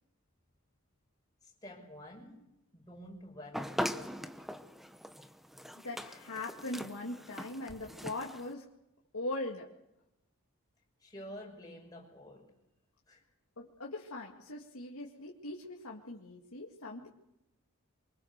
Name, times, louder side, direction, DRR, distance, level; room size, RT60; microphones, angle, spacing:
voice 1, 1.4-2.4 2.7-4.4 11.0-12.5 13.1-13.2, equal, 15° left, 6.4 m, -49 dB
sound 1, 3.5-8.5, equal, ahead, 0.8 m, -41 dB
voice 2, 5.8-8.7 9.1-9.7 13.6-17.1, left 2 dB, 85° left, 2.3 m, -41 dB
24.5 x 23.5 x 6.7 m
head